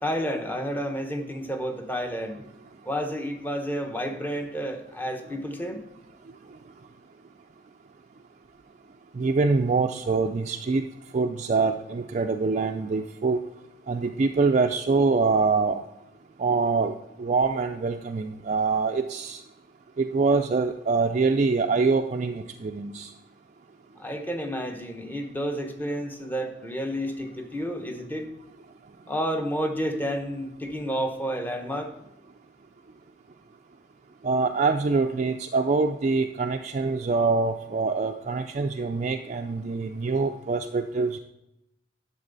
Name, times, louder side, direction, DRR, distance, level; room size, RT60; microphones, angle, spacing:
voice 1, 0.0-2.4 2.8-5.8 24.0-28.3 29.1-31.9, equal, 10° left, 4 dB, 1.0 m, -30 dB
voice 2, 9.2-10.8 11.1-13.4 13.9-15.8 16.4-16.9 17.2-19.4 20.0-23.1 34.2-41.2, right 4 dB, 40° right, 4 dB, 0.4 m, -24 dB
11.0 x 6.9 x 4.0 m, 0.86 s
head